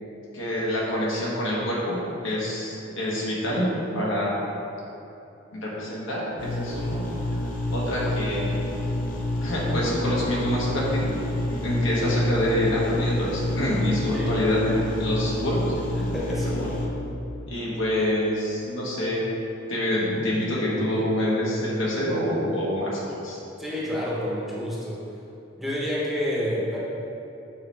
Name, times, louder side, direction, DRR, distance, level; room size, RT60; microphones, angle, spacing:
voice 1, 0.3-3.7 3.9-4.5 5.5-7.0 7.7-8.8 9.4-11.2 11.6-15.6 16.3-16.7 17.5-19.2 19.7-23.4, left 1 dB, 75° left, -5 dB, 1.4 m, -26 dB
sound 1, 6.4-16.9, left 1 dB, 45° left, 0.8 m, -29 dB
voice 2, 16.0-16.8 23.6-25.0 25.6-26.8, equal, ahead, -7 dB, 1.0 m, -29 dB
6.9 x 4.4 x 3.4 m, 2.9 s
head